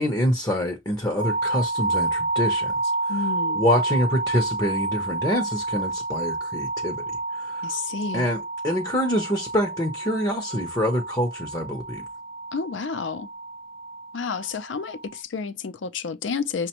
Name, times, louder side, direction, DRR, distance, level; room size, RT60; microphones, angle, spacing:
voice 1, 0.0-2.8 3.5-7.0 7.4-7.7 8.1-12.0, equal, 20° left, 0.6 m, -25 dB
sound 1, 1.2-15.2, right 2 dB, 30° right, 0.3 m, -29 dB
voice 2, 3.1-3.6 7.6-8.3 12.5-13.3 14.1-16.7, left 5 dB, 80° left, 0.5 m, -30 dB
5.9 x 2.2 x 2.8 m
head